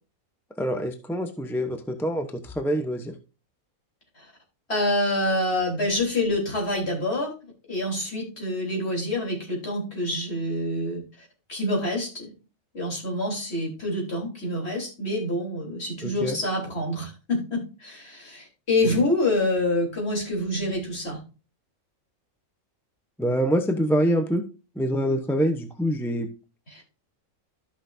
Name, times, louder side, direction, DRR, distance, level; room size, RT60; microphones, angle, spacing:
voice 1, 0.6-3.1 16.0-16.4 18.8-19.0 23.2-24.4 24.8-26.3, equal, ahead, 6 dB, 0.6 m, -25 dB
voice 2, 4.7-7.3 7.7-11.0 11.5-12.3 12.7-21.2 26.7-26.8, left 1 dB, 50° left, -1 dB, 3.9 m, -26 dB
13.5 x 5.8 x 2.6 m, 0.32 s
omnidirectional pair, 1.4 m